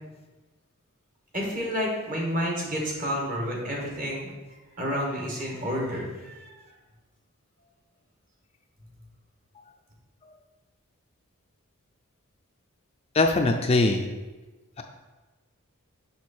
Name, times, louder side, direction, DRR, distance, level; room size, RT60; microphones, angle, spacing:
voice 1, 1.3-4.3 4.8-6.5, equal, 40° right, -1 dB, 1.6 m, -30 dB
voice 2, 13.1-14.0, left 2 dB, 30° left, 4 dB, 0.4 m, -21 dB
6.3 x 5.5 x 4.3 m, 1.2 s
head